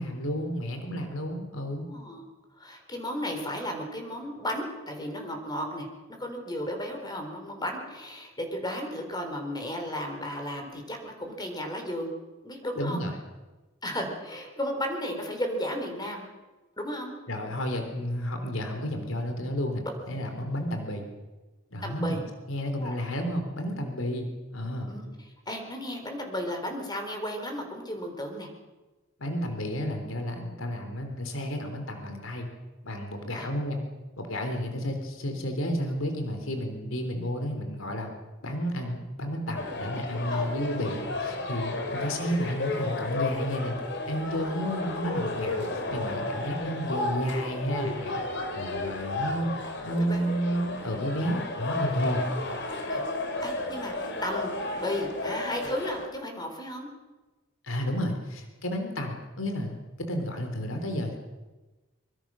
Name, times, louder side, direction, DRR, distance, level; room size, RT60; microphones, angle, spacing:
voice 1, 0.0-1.9 12.8-13.2 17.3-21.0 21.7-22.2 22.5-24.9 29.2-32.5 32.8-33.8 34.2-38.1 38.4-43.8 44.1-48.2 48.5-52.2 57.6-61.2, equal, 85° left, 5 dB, 3.6 m, -31 dB
voice 2, 1.5-2.2 2.6-12.1 12.4-13.0 13.8-16.2 16.8-17.1 21.8-22.2 22.8-22.9 24.9-25.0 25.5-28.5 33.3-33.5 40.3-40.5 44.4-44.6 46.3-46.5 50.1-50.3 51.9-52.0 52.9-53.0 53.4-56.9, equal, 20° left, 3 dB, 4.0 m, -34 dB
sound 1, 39.6-56.1, left 2 dB, 60° left, 3.3 m, -33 dB
24.5 x 23.5 x 6.3 m, 1.2 s
head